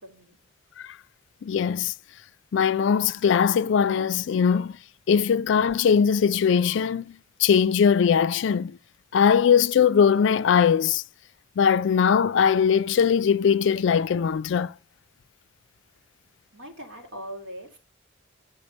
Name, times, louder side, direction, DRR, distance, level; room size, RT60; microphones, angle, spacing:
voice 1, 0.0-0.4 16.5-17.8, equal, 65° right, 3.1 m, -40 dB
voice 2, 1.4-1.9 2.5-4.8 5.1-8.8 9.1-11.0 11.6-14.7, left 7 dB, 60° left, 0.3 m, -21 dB
8.2 x 5.0 x 5.3 m
head